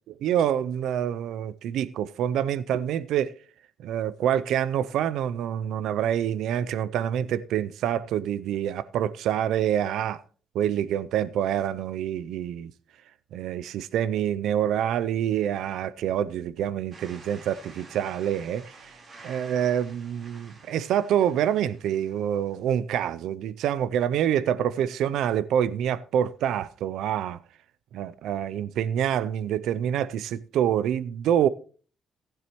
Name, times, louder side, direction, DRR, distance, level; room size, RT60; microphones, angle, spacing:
voice 1, 0.2-3.3 3.8-10.2 10.5-12.7 13.3-18.9 19.2-27.4 27.9-31.5, right 10 dB, 80° right, 0.4 m, -26 dB
sound 1, 16.9-22.7, right 3 dB, 50° right, 3.8 m, -50 dB
15.5 x 9.8 x 3.0 m
cardioid pair, 90°, 0 cm